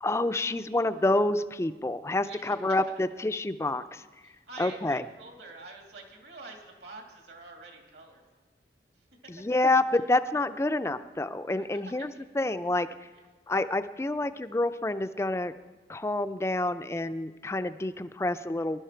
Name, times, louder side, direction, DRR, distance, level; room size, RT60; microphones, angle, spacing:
voice 1, 0.0-4.0 4.6-5.0 9.4-12.1 12.4-12.9 13.5-15.5 15.9-18.8, left 2 dB, 15° left, 11 dB, 0.4 m, -28 dB
voice 2, 2.2-2.8 4.2-8.5 8.9-9.3 9.9-10.0 11.6-12.1 13.1-13.2, right 3 dB, 70° right, 2 dB, 2.4 m, -47 dB
20.0 x 11.5 x 4.5 m, 1.3 s
head